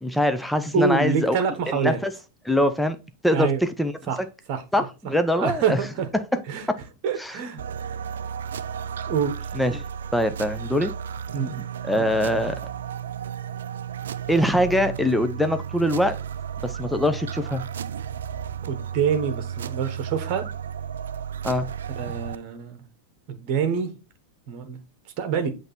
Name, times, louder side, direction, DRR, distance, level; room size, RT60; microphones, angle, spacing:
voice 1, 0.0-1.4 1.7-2.1 2.4-3.0 3.2-3.9 4.2-4.3 4.7-5.8 6.1-6.4 7.2-7.4 9.5-9.8 10.1-10.9 11.8-12.6 14.3-16.1 16.6-17.6 21.4-21.7, left 1 dB, ahead, 0.6 m, -23 dB
voice 2, 0.7-2.0 3.3-3.6 4.1-4.2 4.5-4.6 5.4-6.1 6.5-6.7 7.0-7.6 9.1-9.5 11.3-11.5 18.6-20.5 22.0-22.8 23.3-23.9 24.5-24.8 25.2-25.5, right 6 dB, 45° right, 1.2 m, -26 dB
sound 1, 7.6-22.4, right 8 dB, 65° right, 0.3 m, -33 dB
7.9 x 3.4 x 4.2 m
figure-of-eight pair, 90°, 0 cm